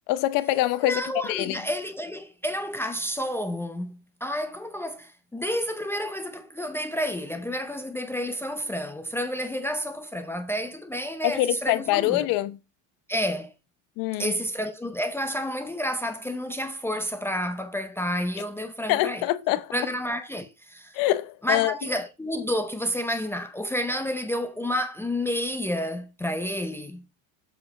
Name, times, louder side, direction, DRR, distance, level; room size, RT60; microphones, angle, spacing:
voice 1, 0.1-1.6 11.2-12.6 14.0-14.3 18.9-19.7 20.9-21.7, left 16 dB, 55° left, 0.8 m, -25 dB
voice 2, 0.8-12.3 13.1-13.5 14.2-19.2 19.7-20.9 21.4-27.0, equal, 5° left, 0.6 m, -30 dB
7.4 x 4.7 x 4.2 m
supercardioid pair, 125°, 40 cm